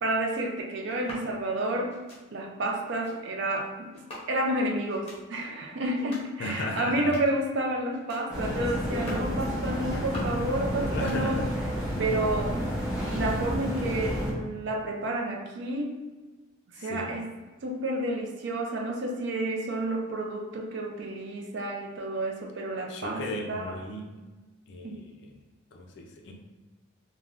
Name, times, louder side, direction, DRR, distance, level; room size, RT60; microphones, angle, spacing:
voice 1, 0.0-2.0 2.3-11.4 12.0-12.6 13.0-15.9 16.7-17.3 17.6-23.7 24.8-25.0, right 1 dB, 55° right, 1 dB, 0.4 m, -30 dB
sound 1, 0.8-1.3 1.9-2.2 2.8-3.2 3.9-4.5 4.9-5.2 5.8-6.3 6.8-7.4 7.9-8.3 8.8-9.3 9.8-10.4 10.8-11.6 11.8-12.4, left 1 dB, 30° left, 0.7 m, -45 dB
voice 2, 6.4-7.2 9.9-10.2 10.7-11.5 16.7-17.2 22.9-24.2 24.7-25.3 25.7-26.3, left 1 dB, 55° left, 2 dB, 0.4 m, -36 dB
sound 2, 8.3-14.3, equal, 5° right, 0.5 m, -30 dB
3.3 x 2.1 x 2.4 m, 1.2 s
head